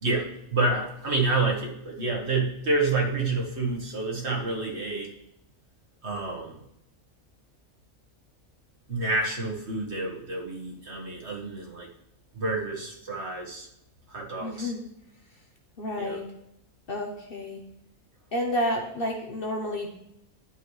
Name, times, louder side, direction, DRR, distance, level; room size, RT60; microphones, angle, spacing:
voice 1, 0.0-5.1 6.0-6.6 8.9-11.9 12.3-13.7 14.1-14.7 16.0-16.2, right 3 dB, 50° right, -2 dB, 1.7 m, -28 dB
voice 2, 14.4-14.8 15.8-16.3 16.9-17.6 18.3-20.0, left 1 dB, 45° left, 1 dB, 1.0 m, -30 dB
11.0 x 6.3 x 3.2 m, 0.81 s
omnidirectional pair, 1.5 m